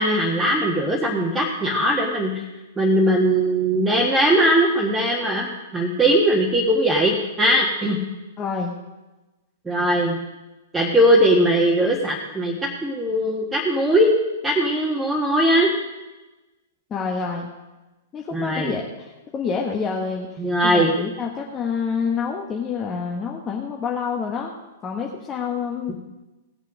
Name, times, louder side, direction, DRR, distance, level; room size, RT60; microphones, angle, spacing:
voice 1, 0.0-2.4 2.8-8.0 9.6-10.2 10.7-12.5 12.8-14.1 14.4-15.7 18.3-18.7 20.4-20.9, equal, 10° right, -3 dB, 1.7 m, -20 dB
voice 2, 8.4-8.7 16.9-17.5 18.1-24.5 24.8-25.9, left 5 dB, 20° left, 0 dB, 1.3 m, -27 dB
18.0 x 7.4 x 5.0 m, 1.1 s
figure-of-eight pair, 105°, 0 cm